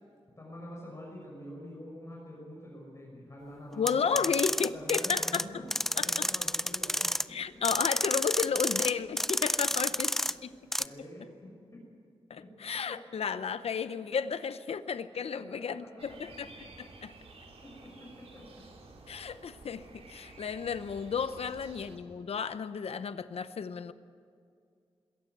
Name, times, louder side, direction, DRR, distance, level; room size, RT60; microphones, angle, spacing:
voice 1, 0.4-3.9 4.2-4.3 4.7-5.6 5.9-7.4 10.8-11.8 12.4-12.5 12.9-13.0 15.3-15.9 17.6-18.6, left 1 dB, 30° left, -3 dB, 5.9 m, -46 dB
voice 2, 3.7-5.4 6.0-6.3 7.3-10.4 12.3-16.5 16.8-17.1 19.1-23.9, left 6 dB, 80° left, 12 dB, 0.8 m, -33 dB
sound 1, 3.9-5.4 5.7-7.2 7.6-8.9 9.2-10.3 10.7-10.9, equal, 5° left, 0.4 m, -30 dB
sound 2, 16.0-22.0, right 3 dB, 90° right, 3.3 m, -52 dB
21.5 x 17.0 x 8.0 m, 2.3 s
wide cardioid pair, 110°, 10 cm